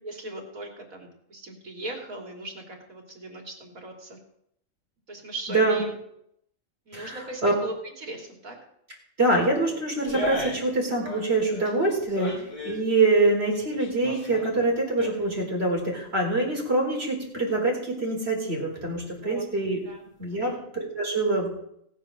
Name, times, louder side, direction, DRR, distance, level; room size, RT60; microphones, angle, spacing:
voice 1, 0.0-4.2 5.1-5.9 6.9-8.6 12.3-12.5 16.3-16.5 19.2-19.4 19.8-20.0 20.3-20.6, right 2 dB, 70° right, 1 dB, 3.3 m, -39 dB
voice 2, 5.5-5.8 6.9-7.5 9.2-12.3 12.6-19.8 20.2-21.5, right 2 dB, 45° right, -1 dB, 4.4 m, -25 dB
sound 1, 10.1-10.8 11.0-12.8 13.4-15.4 15.8-15.9, equal, 25° left, 2.3 m, -36 dB
17.5 x 7.3 x 6.5 m, 0.74 s
omnidirectional pair, 1.5 m